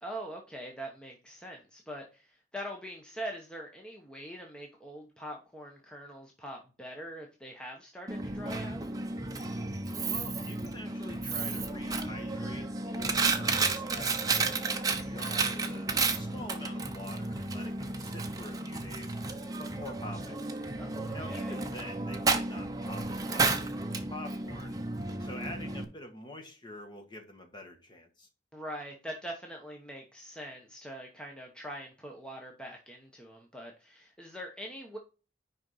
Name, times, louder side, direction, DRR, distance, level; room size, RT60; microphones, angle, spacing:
voice 1, 0.0-8.8 20.8-21.6 28.5-35.0, equal, 5° left, 1.0 m, -43 dB
Coin (dropping), 8.1-25.8, right 3 dB, 20° right, 0.8 m, -32 dB
voice 2, 10.1-19.2 19.6-20.4 21.1-24.8 25.2-28.3, left 1 dB, 25° left, 1.5 m, -46 dB
6.3 x 5.2 x 5.5 m
head